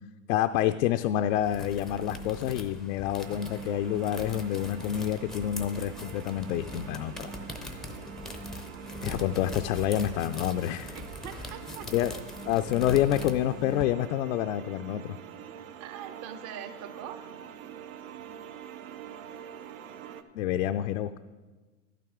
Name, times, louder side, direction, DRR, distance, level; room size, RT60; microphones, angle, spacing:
voice 1, 0.3-7.3 9.0-10.9 11.9-12.1 12.4-15.2 20.3-21.2, left 12 dB, 75° left, 8 dB, 0.5 m, -28 dB
sound 1, 1.2-13.8, equal, ahead, 0.5 m, -41 dB
sound 2, 3.2-20.2, right 9 dB, 80° right, 0.8 m, -46 dB
voice 2, 11.0-11.9 15.5-17.2, right 9 dB, 40° right, 8 dB, 0.9 m, -43 dB
12.0 x 9.2 x 3.6 m, 1.3 s
supercardioid pair, 130°, 40 cm